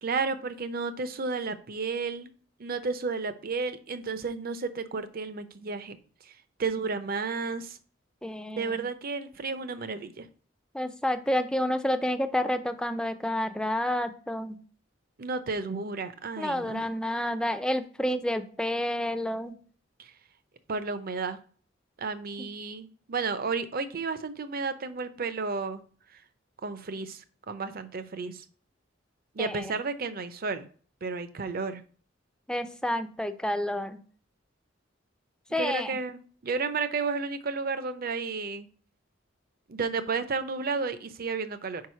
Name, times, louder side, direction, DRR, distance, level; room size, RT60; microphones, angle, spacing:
voice 1, 0.0-2.3 2.6-6.0 6.2-6.3 6.6-7.8 8.6-10.3 15.2-16.9 20.0-20.1 20.7-21.4 22.0-25.8 26.1-26.2 26.6-28.4 29.3-30.7 31.0-31.8 35.6-38.7 39.7-41.8, right 4 dB, 50° right, 11 dB, 0.6 m, -32 dB
voice 2, 8.2-8.8 10.7-14.6 16.4-19.5 22.4-22.5 29.4-29.6 32.5-34.0 35.5-36.0, left 1 dB, 5° left, 8 dB, 0.5 m, -29 dB
4.8 x 4.7 x 5.6 m, 0.43 s
head